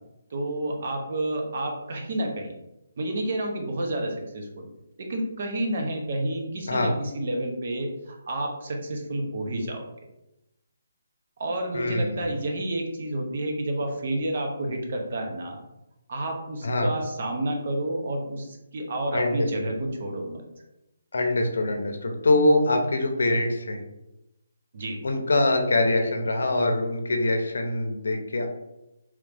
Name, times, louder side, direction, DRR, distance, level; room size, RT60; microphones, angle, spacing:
voice 1, 0.3-2.5 3.0-4.7 5.0-9.8 11.4-15.6 16.1-20.4 24.7-25.0, right 1 dB, 40° right, 2 dB, 0.6 m, -30 dB
voice 2, 11.7-12.3 16.6-16.9 19.1-19.5 21.1-23.8 25.0-28.5, left 2 dB, 80° left, 4 dB, 0.6 m, -24 dB
3.1 x 2.4 x 3.3 m, 0.91 s
hypercardioid pair, 170°, 0 cm